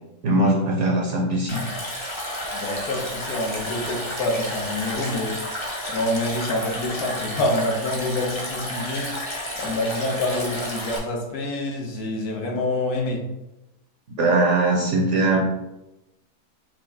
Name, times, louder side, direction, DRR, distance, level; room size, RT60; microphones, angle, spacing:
voice 1, 0.2-1.6 14.2-15.4, right 2 dB, 60° right, -1 dB, 0.9 m, -20 dB
Stream, 1.5-11.0, left 1 dB, 20° left, 0.9 m, -31 dB
voice 2, 2.5-5.4 5.9-9.1 9.6-13.2, left 1 dB, 85° left, 0 dB, 1.5 m, -26 dB
5.3 x 2.6 x 3.5 m, 0.94 s
omnidirectional pair, 1.6 m